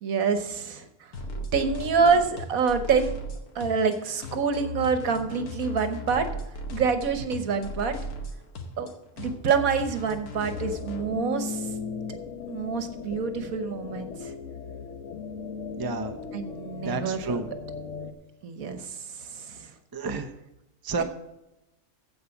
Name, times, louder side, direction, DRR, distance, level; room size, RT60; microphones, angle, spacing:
voice 1, 0.0-3.2 3.5-6.2 6.7-7.9 8.8-8.9 9.2-11.7 12.5-14.3 16.3-17.4 18.4-19.7 21.0-21.1, right 5 dB, 70° right, 9 dB, 1.5 m, -27 dB
sound 1, 1.1-11.0, left 1 dB, 85° left, 1.9 m, -37 dB
sound 2, 10.4-18.1, left 5 dB, 55° left, 1.3 m, -37 dB
voice 2, 15.8-16.2 16.8-17.5 19.9-20.3 20.8-21.0, right 4 dB, 20° right, 6 dB, 0.7 m, -30 dB
15.0 x 5.0 x 7.0 m, 0.93 s
omnidirectional pair, 1.6 m